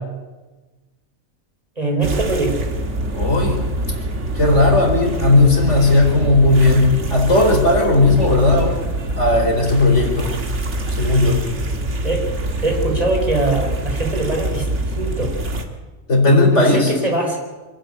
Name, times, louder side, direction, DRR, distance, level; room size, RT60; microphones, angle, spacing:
voice 1, 1.8-2.7 12.0-12.3 12.6-14.7 15.0-15.4 16.5-17.4, right 2 dB, 30° right, 1 dB, 4.5 m, -22 dB
sound 1, 2.0-15.6, right 1 dB, 60° right, 2.1 m, -24 dB
voice 2, 3.1-3.6 4.3-8.8 9.2-10.3 11.0-11.4 16.1-16.9, left 2 dB, 60° left, 1 dB, 4.8 m, -15 dB
25.0 x 11.5 x 9.8 m, 1.2 s
omnidirectional pair, 1.4 m